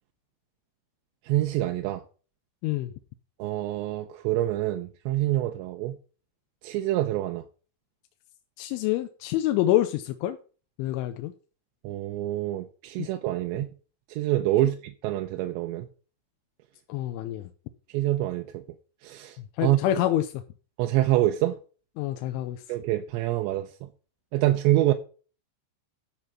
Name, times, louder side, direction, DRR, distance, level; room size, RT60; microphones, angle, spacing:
voice 1, 1.3-2.0 3.4-5.9 6.6-7.4 11.8-13.7 14.1-15.9 17.9-18.6 19.0-20.0 20.8-21.6 22.7-23.7 24.3-24.9, right 15 dB, 80° right, 2.9 m, -26 dB
voice 2, 8.6-10.4 10.8-11.3 13.0-13.1 16.9-17.4 19.6-20.3 22.0-22.6, left 14 dB, 90° left, 3.2 m, -26 dB
12.5 x 5.3 x 5.9 m
omnidirectional pair, 5.4 m